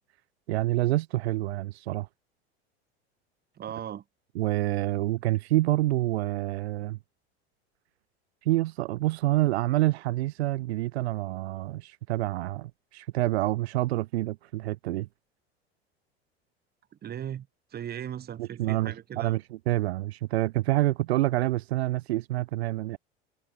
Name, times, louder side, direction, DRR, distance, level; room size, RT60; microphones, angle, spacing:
voice 1, 0.5-2.1 4.4-7.0 8.4-15.1 18.4-23.0, right 17 dB, 75° right, 0.5 m, -27 dB
voice 2, 3.6-4.0 17.0-17.5 17.7-19.4, right 10 dB, 30° right, 1.1 m, -37 dB
hypercardioid pair, 80°, 32 cm